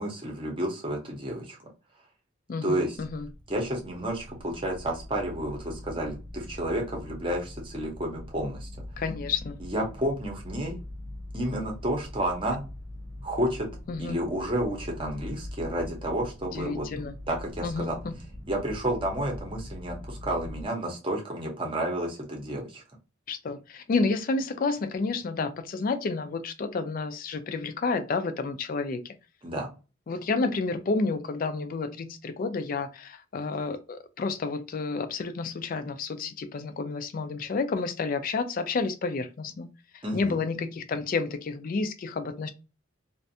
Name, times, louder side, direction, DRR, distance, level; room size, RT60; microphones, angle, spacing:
voice 1, 0.0-1.6 2.6-3.0 3.5-8.7 9.6-10.8 11.3-12.6 13.2-13.7 14.0-16.9 17.3-18.0 18.5-22.8 29.4-29.7 40.0-40.4, right 1 dB, 25° right, 0.7 m, -31 dB
voice 2, 2.5-3.3 9.0-9.6 13.9-14.2 16.5-17.1 17.6-18.1 23.3-29.1 30.1-39.7 39.9-42.5, left 4 dB, 40° left, 0.3 m, -30 dB
sound 1, 2.9-20.6, left 1 dB, 80° right, 0.7 m, -42 dB
2.5 x 2.1 x 2.6 m
head